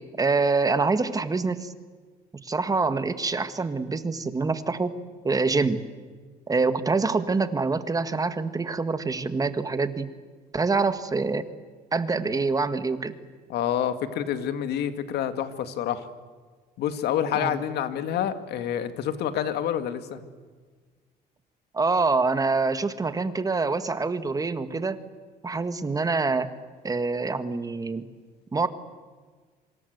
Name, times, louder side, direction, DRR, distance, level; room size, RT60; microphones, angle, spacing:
voice 1, 0.2-1.7 2.4-5.0 5.2-5.8 6.5-10.1 10.5-11.5 11.9-13.2 17.3-17.5 21.7-25.0 25.4-26.5 26.8-28.0 28.5-28.7, right 4 dB, 20° right, 10 dB, 1.7 m, -25 dB
voice 2, 13.5-16.1 16.8-20.2, left 9 dB, 75° left, 9 dB, 2.1 m, -28 dB
26.5 x 25.5 x 8.0 m, 1.5 s
cardioid pair, 110°, 17 cm